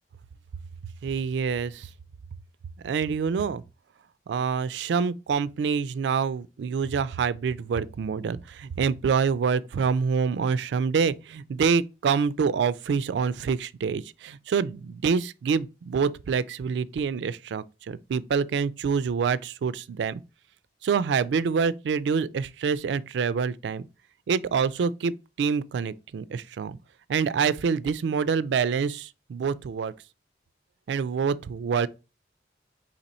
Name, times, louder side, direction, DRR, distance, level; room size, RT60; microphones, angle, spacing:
voice 1, 1.0-1.9 2.8-3.6 4.3-20.2 20.8-23.9 24.3-26.8 27.1-29.9 30.9-31.9, right 6 dB, 80° right, 0.3 m, -26 dB
4.2 x 3.0 x 4.1 m
head